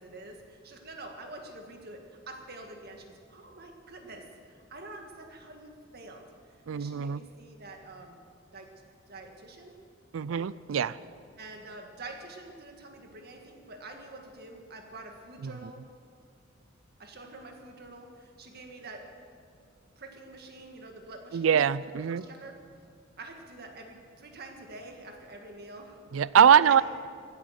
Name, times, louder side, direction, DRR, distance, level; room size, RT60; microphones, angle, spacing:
voice 1, 0.0-6.2 6.5-8.2 8.5-8.7 9.1-9.7 10.3-10.5 11.4-15.8 17.0-19.0 20.0-21.7 22.0-22.5 23.2-26.0 26.6-26.8, right 2 dB, 50° right, 3 dB, 1.8 m, -46 dB
voice 2, 6.7-7.2 10.1-11.0 15.4-15.5 21.3-22.2 26.1-26.8, right 8 dB, 75° right, 19 dB, 0.4 m, -22 dB
16.0 x 10.0 x 6.5 m, 2.2 s
head